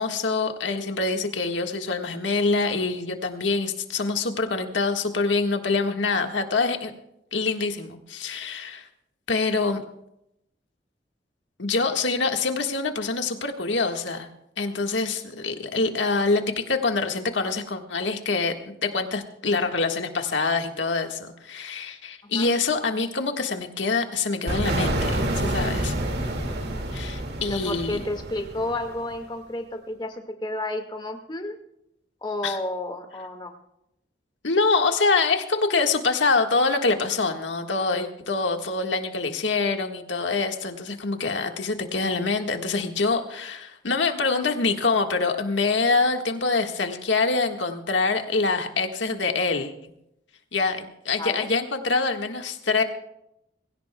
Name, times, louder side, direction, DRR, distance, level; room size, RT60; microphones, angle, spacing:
voice 1, 0.0-6.9 7.3-8.9 9.3-9.8 11.6-14.3 14.6-18.5 18.8-25.9 26.9-28.1 32.4-32.6 34.4-49.9 50.5-52.8, left 3 dB, 80° left, 5 dB, 1.6 m, -25 dB
sound 1, 24.5-29.1, right 1 dB, 60° right, 2.2 m, -28 dB
voice 2, 27.4-31.6 32.2-33.5 51.2-51.5, left 1 dB, 25° left, 5 dB, 1.9 m, -31 dB
22.0 x 16.5 x 2.3 m, 0.81 s
head